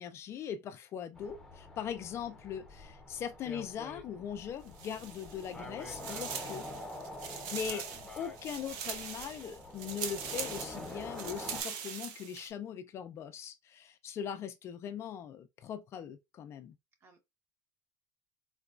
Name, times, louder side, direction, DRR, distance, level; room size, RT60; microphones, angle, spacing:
voice 1, 0.0-6.7 7.2-7.8 8.2-16.7, left 8 dB, 35° left, 0.3 m, -40 dB
sound 1, 1.2-11.6, left 1 dB, 5° left, 0.7 m, -46 dB
sound 2, 4.7-5.5 5.8-12.5, right 7 dB, 65° right, 0.6 m, -42 dB
voice 2, 7.2-7.6 17.0-17.2, right 5 dB, 30° right, 0.9 m, -61 dB
3.8 x 2.2 x 2.4 m
cardioid pair, 145°, 8 cm